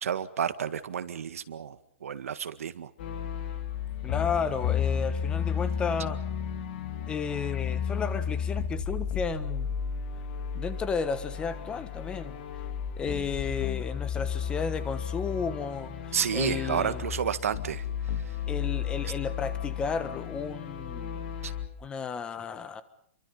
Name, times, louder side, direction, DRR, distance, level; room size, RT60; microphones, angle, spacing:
voice 1, 0.0-2.9 16.1-17.8 21.4-21.5, right 8 dB, 85° right, 11 dB, 1.9 m, -31 dB
sound 1, 3.0-21.7, left 7 dB, 50° left, 3.2 m, -33 dB
voice 2, 4.0-6.2 7.1-9.7 10.5-12.4 13.0-17.0 18.5-21.2 21.8-22.8, left 6 dB, 10° left, 13 dB, 1.3 m, -33 dB
29.0 x 24.0 x 5.6 m, 0.65 s
hypercardioid pair, 160°, 7 cm